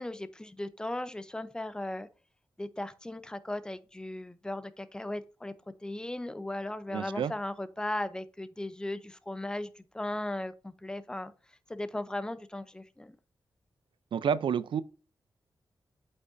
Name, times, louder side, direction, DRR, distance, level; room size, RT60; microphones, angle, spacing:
voice 1, 0.0-2.1 2.6-5.5 5.8-11.3 11.7-13.2, left 1 dB, 10° left, 0.6 m, -37 dB
voice 2, 6.9-7.3 14.1-14.8, right 7 dB, 80° right, 0.5 m, -29 dB
8.3 x 5.3 x 2.6 m
wide cardioid pair, 130°, 9 cm